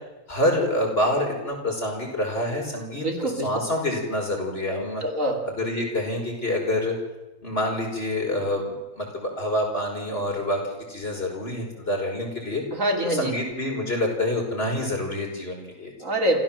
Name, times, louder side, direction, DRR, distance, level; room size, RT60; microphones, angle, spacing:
voice 1, 0.3-5.0 5.5-6.9 7.4-10.6 10.9-12.6 13.0-15.9, left 1 dB, 40° left, 0 dB, 5.8 m, -27 dB
voice 2, 2.9-3.6 4.7-5.4 12.7-13.4 16.0-16.4, right 1 dB, 60° right, 2 dB, 3.4 m, -25 dB
27.0 x 15.5 x 7.6 m, 1.1 s
omnidirectional pair, 1.5 m